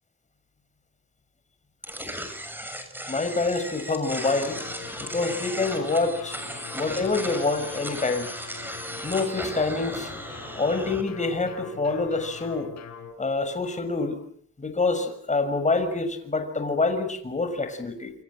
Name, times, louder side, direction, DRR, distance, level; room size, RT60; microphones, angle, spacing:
sound 1, 1.8-11.0, equal, 5° right, 7.1 m, -36 dB
voice 1, 3.1-4.6 5.0-6.4 6.7-8.3 9.0-10.1 10.6-12.7 13.2-14.2 14.6-18.1, left 3 dB, 25° left, 8 dB, 6.6 m, -26 dB
sound 2, 4.1-13.1, left 6 dB, 60° left, 6.6 m, -42 dB
28.5 x 26.0 x 7.7 m, 0.63 s
cardioid pair, 90°, 30 cm